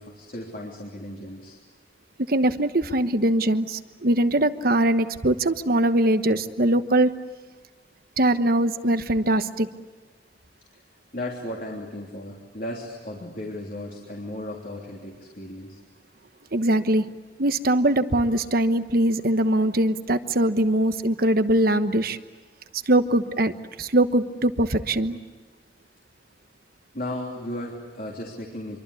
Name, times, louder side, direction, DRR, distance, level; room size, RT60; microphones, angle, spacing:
voice 1, 0.0-1.6 11.1-15.8 26.9-28.8, left 1 dB, 50° left, -1 dB, 3.4 m, -35 dB
voice 2, 2.3-7.1 8.2-9.7 16.5-17.1 17.4-22.2 22.9-23.5 23.8-25.2, right 1 dB, 50° right, 10 dB, 1.2 m, -22 dB
26.5 x 24.0 x 8.4 m, 1.4 s
head